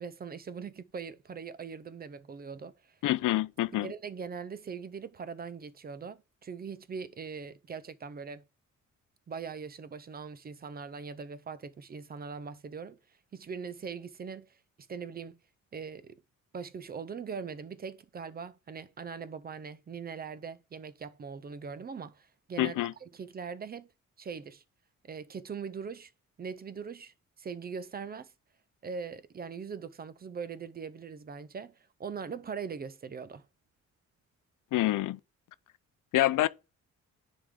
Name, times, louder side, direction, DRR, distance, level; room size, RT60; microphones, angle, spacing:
voice 1, 0.0-2.9 3.8-8.5 9.3-13.0 13.3-14.5 14.9-15.4 15.7-16.2 16.5-22.7 23.0-23.9 24.2-24.6 25.1-26.1 26.4-28.3 28.8-33.5, right 6 dB, 30° right, 0.4 m, -41 dB
voice 2, 3.0-3.9 22.6-22.9 34.7-35.2 36.1-36.5, left 15 dB, 80° left, 0.5 m, -27 dB
10.0 x 3.6 x 3.6 m
wide cardioid pair, 145°, 31 cm